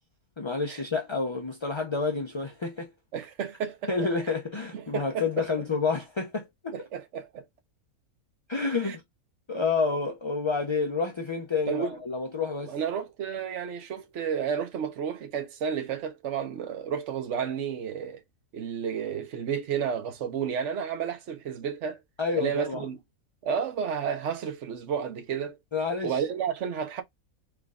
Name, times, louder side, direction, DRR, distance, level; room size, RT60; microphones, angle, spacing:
voice 1, 0.4-2.9 3.9-6.9 8.5-9.0 9.5-12.8 22.2-22.9 25.7-26.2, left 4 dB, 30° left, 0.6 m, -29 dB
voice 2, 3.1-3.9 4.7-5.3 6.7-7.4 8.8-8.9 11.7-11.9 12.6-18.2 18.5-22.0 22.4-23.0 23.4-25.6 26.0-27.0, right 7 dB, 55° right, 1.2 m, -31 dB
4.8 x 3.7 x 2.4 m
omnidirectional pair, 1.5 m